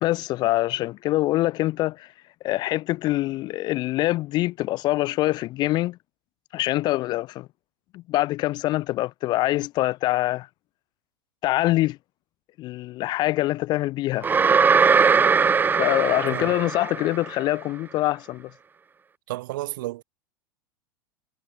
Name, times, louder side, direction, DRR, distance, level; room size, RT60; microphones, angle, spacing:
voice 1, 0.0-2.1 2.4-6.0 6.5-7.5 7.9-10.5 11.4-12.0 12.6-14.3 15.8-18.5, left 17 dB, 35° left, 0.5 m, -24 dB
sound 1, 14.2-17.3, right 5 dB, 15° right, 0.6 m, -20 dB
voice 2, 19.3-20.0, right 17 dB, 60° right, 1.6 m, -32 dB
figure-of-eight pair, 80°, 12 cm